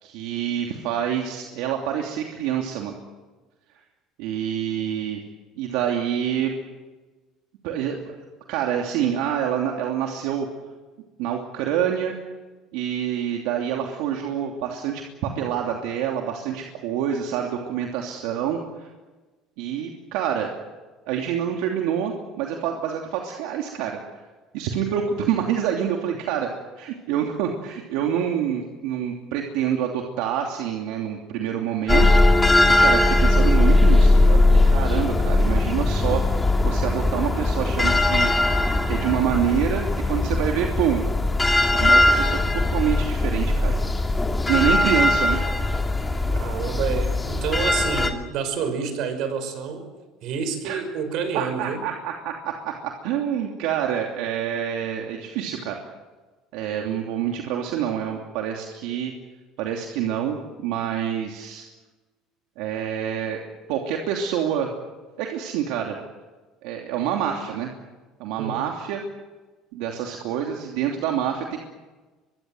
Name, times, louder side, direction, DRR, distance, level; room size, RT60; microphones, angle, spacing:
voice 1, 0.0-2.9 4.2-5.2 5.6-6.5 7.6-10.5 11.2-12.2 12.7-18.9 19.6-20.5 21.1-24.0 24.5-36.2 36.6-38.3 38.9-41.0 41.8-43.8 44.4-45.4 50.6-50.8 51.3-55.8 56.5-59.1 59.6-61.6 62.6-63.4 63.7-64.7 65.2-66.0 66.6-67.7 68.2-69.0 69.7-71.6, right 9 dB, 80° right, 1 dB, 2.9 m, -27 dB
sound 1, 31.9-48.1, left 2 dB, 10° left, 2.3 m, -19 dB
voice 2, 46.3-49.9 50.2-51.8 68.4-68.6, right 6 dB, 60° right, 9 dB, 5.8 m, -28 dB
23.5 x 23.5 x 7.9 m, 1.2 s
cardioid pair, 135°, 0 cm